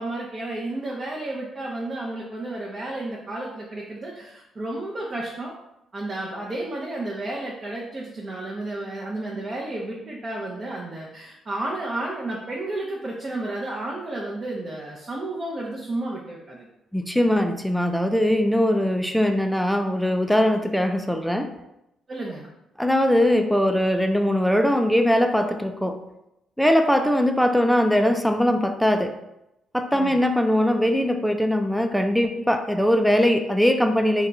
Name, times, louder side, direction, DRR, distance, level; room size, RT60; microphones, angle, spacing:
voice 1, 0.0-5.5 5.9-16.7 22.1-22.5 29.9-30.2, right 2 dB, 40° right, -3 dB, 0.6 m, -32 dB
voice 2, 16.9-21.5 22.8-26.0 26.6-29.1 29.7-34.3, equal, ahead, 5 dB, 0.3 m, -21 dB
2.8 x 2.2 x 3.7 m, 0.88 s
supercardioid pair, 70°, 0 cm